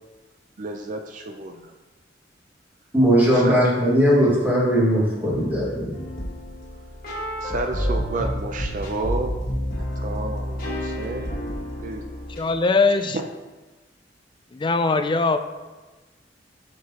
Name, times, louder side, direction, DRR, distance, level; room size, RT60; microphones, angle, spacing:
voice 1, 0.6-1.7 3.3-3.6 7.4-9.4 9.8-11.3 11.8-12.0 13.1-13.2, right 2 dB, 45° right, 5 dB, 0.5 m, -31 dB
voice 2, 2.9-6.0, equal, 10° right, -6 dB, 2.0 m, -19 dB
sound 1, 5.9-12.4, equal, 50° left, 1.6 m, -29 dB
voice 3, 12.4-13.2 14.5-15.4, left 3 dB, 25° left, 9 dB, 0.3 m, -21 dB
7.6 x 5.9 x 2.9 m, 1.2 s
head